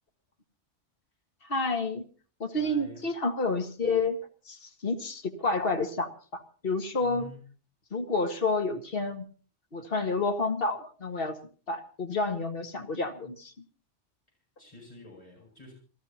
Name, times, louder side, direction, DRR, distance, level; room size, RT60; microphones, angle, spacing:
voice 1, 1.4-2.1 2.4-4.2 4.5-7.3 7.9-9.3 9.7-11.4 11.7-13.5, left 3 dB, 50° left, 5 dB, 2.0 m, -29 dB
voice 2, 2.6-3.1 7.0-7.4 14.6-15.7, left 1 dB, 30° left, -1 dB, 7.2 m, -48 dB
28.0 x 14.5 x 2.9 m, 0.40 s
omnidirectional pair, 1.3 m